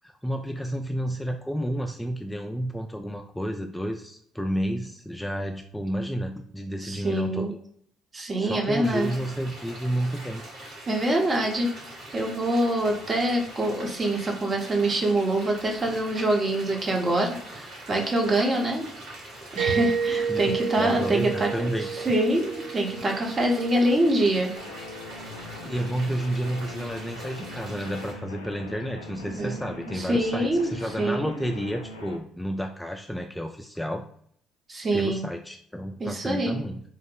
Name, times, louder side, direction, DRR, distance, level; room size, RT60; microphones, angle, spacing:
voice 1, 0.0-7.5 8.4-10.4 20.3-21.9 23.5-23.6 25.6-34.0 34.9-36.8, equal, 5° left, 3 dB, 0.3 m, -31 dB
voice 2, 6.8-7.5 8.1-9.1 10.9-11.7 12.1-18.8 19.5-21.7 21.9-24.5 29.3-29.6 29.9-30.7 31.0-31.3 34.7-35.2 36.0-36.6, right 1 dB, 35° right, 1 dB, 0.9 m, -25 dB
sound 1, 8.8-28.1, right 1 dB, 60° right, 1.4 m, -43 dB
Mallet percussion, 19.6-24.2, right 6 dB, 80° right, 0.3 m, -30 dB
sound 2, 24.6-32.2, left 2 dB, 90° left, 0.3 m, -42 dB
2.9 x 2.0 x 3.8 m, 0.64 s
hypercardioid pair, 50°, 0 cm